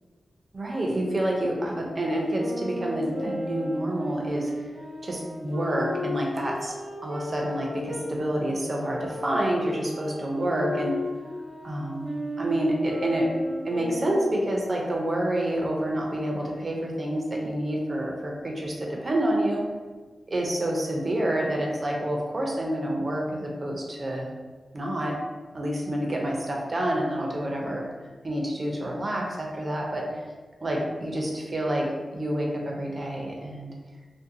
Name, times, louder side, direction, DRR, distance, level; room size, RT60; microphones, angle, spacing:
voice 1, 0.5-4.5 5.1-6.7 7.0-11.0 11.6-13.3 13.7-19.6 20.3-24.3 24.7-25.2 25.5-27.8 28.2-30.0 30.6-33.7, right 1 dB, 40° right, -1 dB, 0.5 m, -28 dB
sound 1, 2.3-8.1 8.8-14.4, left 1 dB, 75° right, 0.8 m, -35 dB
2.5 x 2.1 x 2.7 m, 1.3 s
wide cardioid pair, 90°, 0 cm